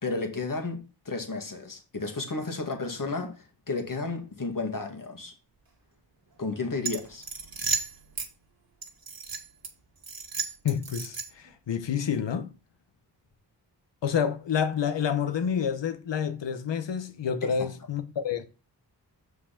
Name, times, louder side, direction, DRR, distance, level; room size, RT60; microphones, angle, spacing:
voice 1, 0.0-5.3 6.4-7.2 17.4-17.5, left 3 dB, 50° left, 2.2 m, -32 dB
sound 1, 6.8-8.3 8.8-9.7 10.0-11.5, right 5 dB, 55° right, 1.9 m, -33 dB
voice 2, 10.6-12.5 14.0-18.5, left 7 dB, 85° left, 1.2 m, -28 dB
6.4 x 4.7 x 5.9 m
cardioid pair, 55°, 42 cm